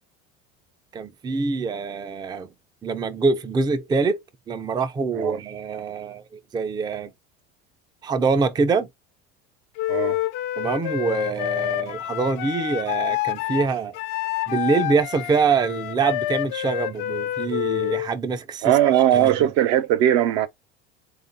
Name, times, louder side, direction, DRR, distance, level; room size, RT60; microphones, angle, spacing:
voice 1, 0.9-2.5 2.8-6.2 6.5-7.1 8.0-8.9 10.6-14.0 14.5-19.5, right 4 dB, 15° right, 0.5 m, -25 dB
Wind instrument woodwind instrument, 9.8-18.1, left 15 dB, 75° left, 0.8 m, -28 dB
voice 2, 9.9-10.2 18.6-20.5, right 11 dB, 65° right, 0.8 m, -19 dB
3.6 x 2.5 x 3.9 m
supercardioid pair, 120°, 29 cm